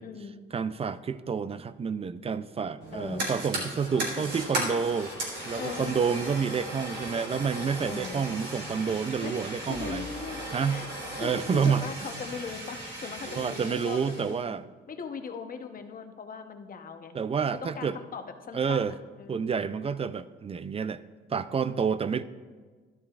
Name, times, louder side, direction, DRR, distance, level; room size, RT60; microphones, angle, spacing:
voice 1, 0.0-0.3 2.9-3.3 3.9-4.2 5.5-5.9 7.8-8.3 9.2-9.4 9.7-10.9 11.2-14.6 14.9-17.1 17.6-19.5 21.7-22.2, left 5 dB, 45° left, 6 dB, 0.9 m, -40 dB
voice 2, 0.5-5.1 5.5-10.0 10.5-10.8 11.2-11.8 13.4-14.6 17.1-18.0 18.5-18.9 19.3-21.0 21.3-22.2, right 6 dB, 30° right, 14 dB, 0.4 m, -29 dB
Fire, 2.8-14.4, right 1 dB, 60° right, 3.4 m, -37 dB
sound 1, 3.8-11.4, left 2 dB, 25° left, 2.9 m, -45 dB
12.5 x 12.0 x 2.4 m, 1.4 s
cardioid pair, 90°, 20 cm